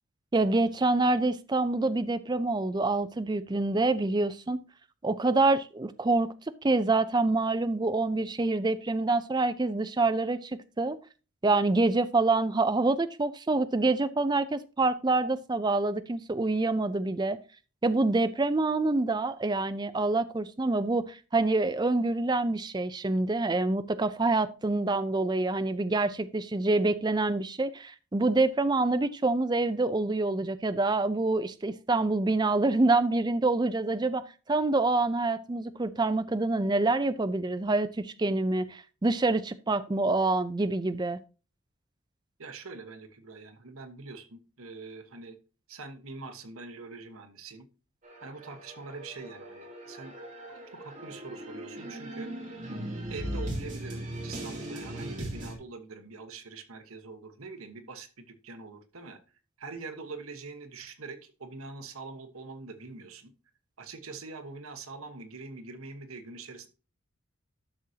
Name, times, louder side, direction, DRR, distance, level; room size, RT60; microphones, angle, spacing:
voice 1, 0.3-4.6 5.0-6.3 6.6-11.0 11.4-17.4 17.8-41.2, right 2 dB, 20° right, 12 dB, 0.4 m, -26 dB
voice 2, 42.4-45.4 45.7-47.7 48.2-50.1 50.5-52.3 53.1-59.2 59.6-63.3 63.8-66.7, right 3 dB, 80° right, 7 dB, 1.2 m, -44 dB
sound 1, 48.0-55.5, right 1 dB, 35° right, 2.7 m, -39 dB
12.0 x 6.3 x 2.8 m, 0.34 s
head